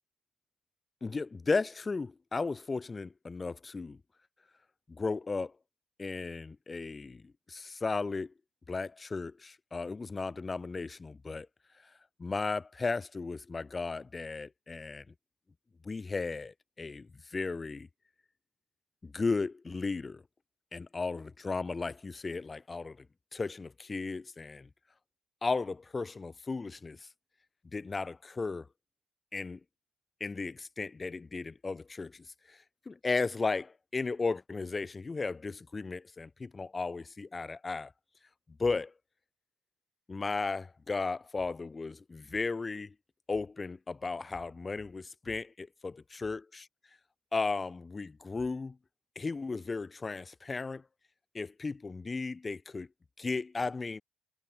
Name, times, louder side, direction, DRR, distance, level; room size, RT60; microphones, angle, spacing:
voice 1, 1.0-4.0 4.9-5.5 6.0-7.2 7.5-8.3 8.7-11.5 12.2-15.0 15.8-17.9 19.0-20.2 20.7-23.1 23.3-24.7 25.4-27.0 27.7-28.7 29.3-29.6 30.2-32.6 32.9-37.9 38.6-38.9 40.1-42.9 43.3-46.7 47.3-48.8 49.2-50.8 51.3-52.9 53.2-54.0, left 4 dB, 20° left, 1.8 m, -35 dB
cardioid pair, 145°, 0 cm